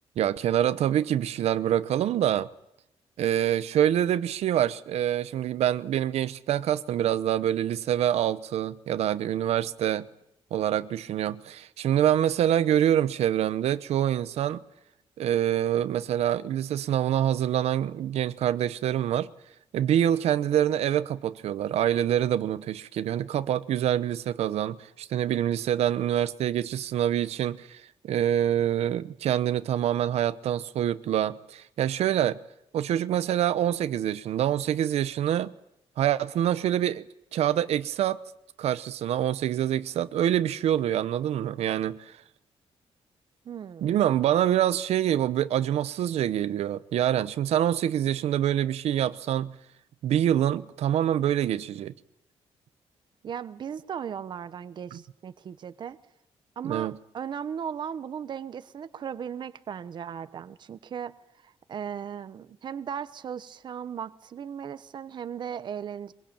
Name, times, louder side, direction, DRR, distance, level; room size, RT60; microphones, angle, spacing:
voice 1, 0.2-2.5 3.2-10.1 10.5-14.6 15.2-19.3 19.7-32.4 32.7-35.5 36.0-37.0 37.3-38.2 38.6-42.1 43.8-49.5 50.0-51.9 54.9-55.0 56.6-56.9, right 11 dB, 85° right, 0.9 m, -26 dB
voice 2, 43.4-44.0 53.2-56.0 56.6-61.1 61.4-66.1, right 8 dB, 45° right, 1.0 m, -37 dB
23.0 x 22.5 x 8.8 m
wide cardioid pair, 165°, 11 cm